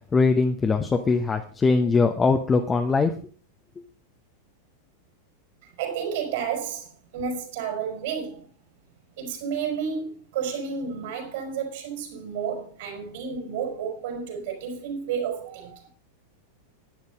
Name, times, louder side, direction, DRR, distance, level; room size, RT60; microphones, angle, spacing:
voice 1, 0.1-3.1, left 4 dB, 15° left, 1.0 m, -21 dB
voice 2, 5.8-8.5 9.2-15.8, right 6 dB, 55° right, 4.6 m, -31 dB
11.0 x 10.0 x 5.2 m
figure-of-eight pair, 90°, 0 cm